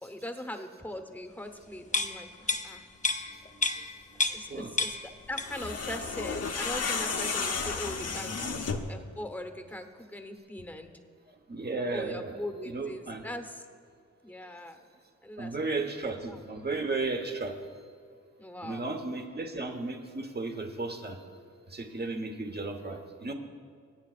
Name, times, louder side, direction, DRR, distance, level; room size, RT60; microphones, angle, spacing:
voice 1, 0.0-2.9 4.3-10.9 11.9-13.6 14.2-14.8 15.2-15.9 16.3-16.4 18.4-18.9, left 1 dB, 5° left, 6 dB, 1.0 m, -41 dB
sound 1, 1.9-4.5 4.8-5.7 6.1-6.2, left 3 dB, 25° left, 0.7 m, -31 dB
voice 2, 3.5-3.8 4.5-4.7 8.4-8.5 11.5-13.2 15.4-17.6 18.6-21.2 21.7-23.3, right 3 dB, 35° right, 4 dB, 1.2 m, -34 dB
sound 2, 5.4-9.0, left 4 dB, 55° left, 0.9 m, -32 dB
23.5 x 8.2 x 2.5 m, 2.2 s
cardioid pair, 65°, 30 cm